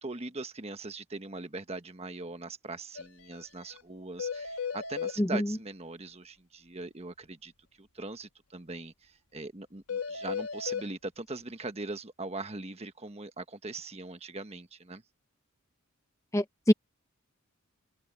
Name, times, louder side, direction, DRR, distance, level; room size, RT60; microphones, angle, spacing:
voice 1, 0.0-7.5 7.8-15.0, right 3 dB, 30° right, 1.3 m, -41 dB
sound 1, 2.9-3.1 3.3-3.4 3.7-3.8 4.2-5.2 9.9-10.9, left 6 dB, 75° left, 1.4 m, -35 dB
voice 2, 16.3-16.7, left 1 dB, 15° left, 0.6 m, -25 dB
open air
head